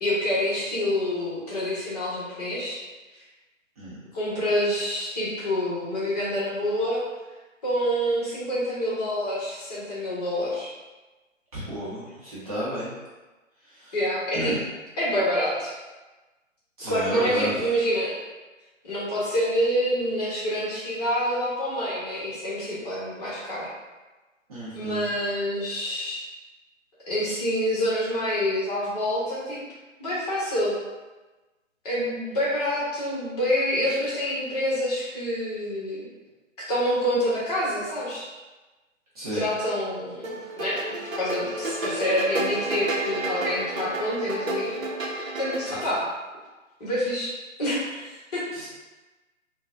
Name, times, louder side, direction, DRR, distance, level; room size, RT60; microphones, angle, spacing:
voice 1, 0.0-2.8 4.1-7.0 7.6-10.7 13.9-14.6 15.0-15.7 16.9-18.1 18.8-23.7 24.7-26.2 27.1-29.6 30.0-30.7 31.8-36.0 36.6-38.3 39.3-44.7 45.4-46.1 46.8-47.3 47.6-48.4, equal, 30° left, -8 dB, 1.1 m, -27 dB
voice 2, 11.5-12.9 13.6-14.0 14.3-14.6 16.8-17.7 24.5-25.1 39.1-39.5 48.5-48.7, equal, 30° right, -9 dB, 0.8 m, -32 dB
sound 1, 40.2-45.9, right 2 dB, 80° right, 0.7 m, -31 dB
3.7 x 2.2 x 2.4 m, 1.2 s
figure-of-eight pair, 145°, 40 cm